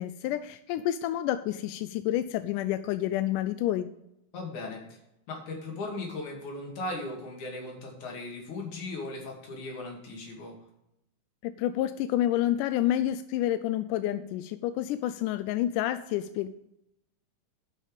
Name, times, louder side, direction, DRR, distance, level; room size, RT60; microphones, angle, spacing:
voice 1, 0.0-3.9 11.4-16.5, left 13 dB, 80° left, 11 dB, 1.9 m, -29 dB
voice 2, 4.3-4.8 5.3-10.6, left 2 dB, 60° left, 0 dB, 3.7 m, -37 dB
11.5 x 6.3 x 5.0 m, 0.85 s
omnidirectional pair, 4.0 m